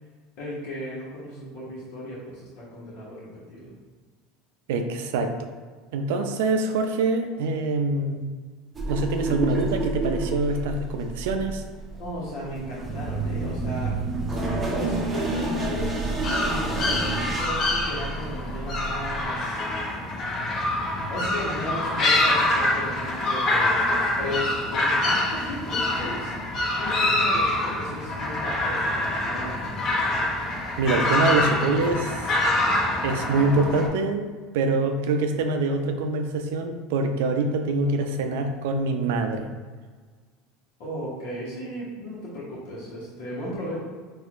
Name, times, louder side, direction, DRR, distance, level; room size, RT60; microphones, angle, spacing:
voice 1, 0.4-3.7 12.0-13.9 14.7-19.6 21.1-26.3 26.8-29.6 40.8-43.8, equal, 70° left, -8 dB, 1.1 m, -35 dB
voice 2, 4.7-5.5 5.9-8.2 8.9-11.6 30.8-32.3 33.0-34.3 34.5-39.5, right 3 dB, 80° right, 5 dB, 0.4 m, -25 dB
sound 1, 8.8-19.2, right 2 dB, 20° right, 0.7 m, -29 dB
sound 2, 16.2-33.9, left 1 dB, 45° left, 0.8 m, -25 dB
4.3 x 2.5 x 2.5 m, 1.5 s
supercardioid pair, 100°, 0 cm